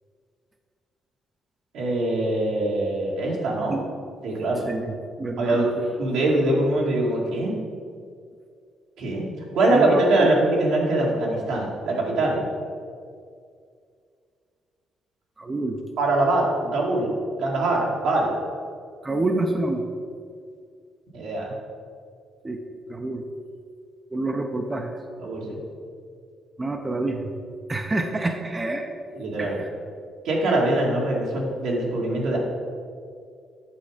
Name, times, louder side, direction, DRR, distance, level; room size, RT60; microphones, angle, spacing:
voice 1, 1.7-3.8 4.2-4.7 5.4-7.5 9.0-9.3 9.5-12.5 16.0-17.1 17.4-18.3 21.1-21.5 25.2-25.6 29.1-29.6 30.2-32.4, right 2 dB, 85° right, -3 dB, 2.1 m, -23 dB
voice 2, 4.7-5.7 9.7-10.3 15.4-15.8 19.0-19.8 22.4-22.6 22.9-23.3 24.1-24.9 26.6-27.3 27.7-28.9 29.4-29.7, right 2 dB, 25° right, 4 dB, 0.7 m, -27 dB
8.4 x 6.1 x 5.0 m, 2.2 s
cardioid pair, 90°, 0 cm